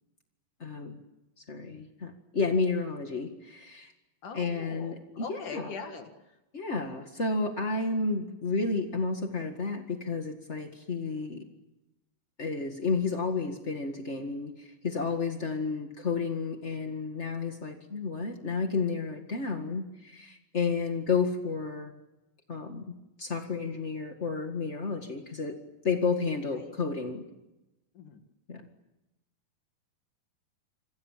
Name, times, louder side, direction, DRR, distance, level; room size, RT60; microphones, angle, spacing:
voice 1, 0.6-1.0 1.4-3.9 4.3-5.7 6.5-11.4 12.4-21.9 22.5-25.6 25.8-27.2 28.5-28.6, left 4 dB, 35° left, 4 dB, 1.1 m, -31 dB
voice 2, 4.2-6.4 15.6-15.8 26.6-26.7 28.0-28.2, left 5 dB, 60° left, 6 dB, 3.3 m, -42 dB
28.0 x 27.0 x 7.5 m, 0.98 s
omnidirectional pair, 4.2 m